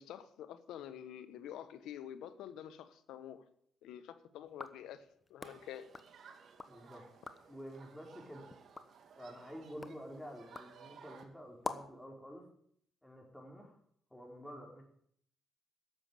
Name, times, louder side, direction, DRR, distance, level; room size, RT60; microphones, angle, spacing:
voice 1, 0.0-3.4 3.8-5.9, left 10 dB, 85° left, 11 dB, 1.2 m, -48 dB
sound 1, 4.5-6.8 7.1-7.6 8.1-12.1, left 3 dB, 25° left, 1.2 m, -49 dB
Human group actions, 5.4-11.3, right 6 dB, 60° right, 2.1 m, -58 dB
voice 2, 6.6-7.0 7.5-8.5 9.1-12.4 13.0-13.8 14.1-14.8, equal, 5° left, 0 dB, 4.7 m, -49 dB
12.0 x 7.6 x 8.5 m, 0.64 s
cardioid pair, 90°, 0 cm